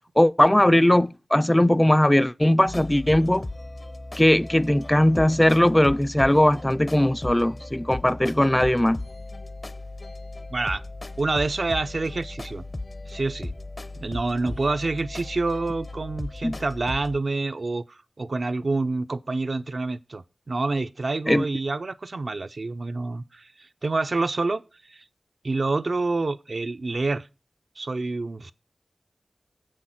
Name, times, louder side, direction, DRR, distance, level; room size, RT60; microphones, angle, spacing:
voice 1, 0.2-3.5 4.2-9.0 16.4-16.6 21.3-21.5, left 1 dB, 15° left, 0.4 m, -19 dB
sound 1, 2.7-17.2, left 2 dB, 40° left, 0.7 m, -37 dB
voice 2, 10.5-10.8 11.2-12.6 13.1-13.5 14.0-24.6 24.9-25.0 25.4-27.3 27.8-28.5, right 3 dB, 60° right, 0.5 m, -27 dB
7.2 x 6.3 x 5.8 m
wide cardioid pair, 60°, 0 cm